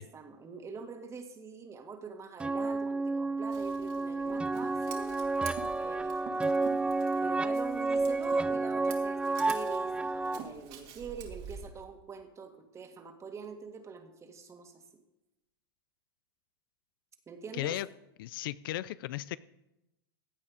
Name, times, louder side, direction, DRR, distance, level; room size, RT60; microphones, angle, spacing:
voice 1, 0.0-5.1 5.6-6.5 7.2-14.8 17.3-17.8, right 5 dB, 25° right, 6 dB, 1.8 m, -45 dB
sound 1, 2.4-10.4, right 3 dB, 10° right, 0.5 m, -30 dB
Scissors, 3.5-11.7, right 7 dB, 50° right, 2.2 m, -48 dB
voice 2, 17.5-17.9 18.2-19.4, left 15 dB, 70° left, 18 dB, 0.4 m, -35 dB
16.0 x 8.5 x 4.9 m, 0.94 s
hypercardioid pair, 110°, 12 cm